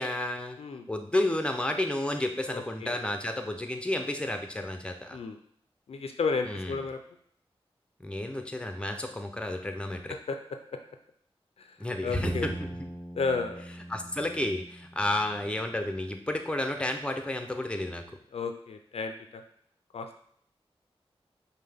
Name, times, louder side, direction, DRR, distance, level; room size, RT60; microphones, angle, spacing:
voice 1, 0.0-0.6 0.9-5.2 6.5-6.7 8.0-10.2 11.8-12.5 13.9-18.0, left 1 dB, 10° left, 5 dB, 0.6 m, -31 dB
voice 2, 2.5-3.0 5.1-5.4 5.9-7.0 10.3-10.4 10.7-10.8 11.6-11.8 12.0-12.5 13.1-13.6 18.3-19.4 19.9-20.1, left 4 dB, 80° left, 7 dB, 0.4 m, -32 dB
Bowed string instrument, 12.1-15.5, right 1 dB, 5° right, 1.0 m, -38 dB
5.4 x 2.2 x 3.4 m, 0.65 s
cardioid pair, 60°, 10 cm